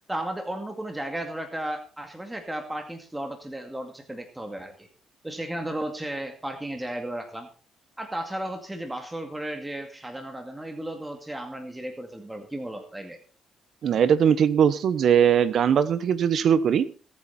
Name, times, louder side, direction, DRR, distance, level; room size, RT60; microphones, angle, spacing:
voice 1, 0.1-4.9 5.2-7.5 8.0-13.2, right 1 dB, 10° right, 5 dB, 2.3 m, -34 dB
voice 2, 13.8-16.9, right 8 dB, 65° right, 16 dB, 1.0 m, -20 dB
21.5 x 8.8 x 4.3 m, 0.37 s
cardioid pair, 90°, 0 cm